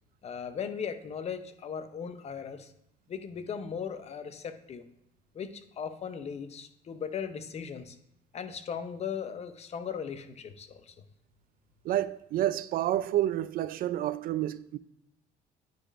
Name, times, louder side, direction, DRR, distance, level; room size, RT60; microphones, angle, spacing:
voice 1, 0.2-2.7 3.1-4.8 5.3-8.0 8.3-10.9, left 7 dB, 40° left, 0.7 m, -38 dB
voice 2, 11.8-14.8, right 13 dB, 60° right, 0.4 m, -29 dB
9.2 x 4.9 x 2.5 m
cardioid pair, 110°, 17 cm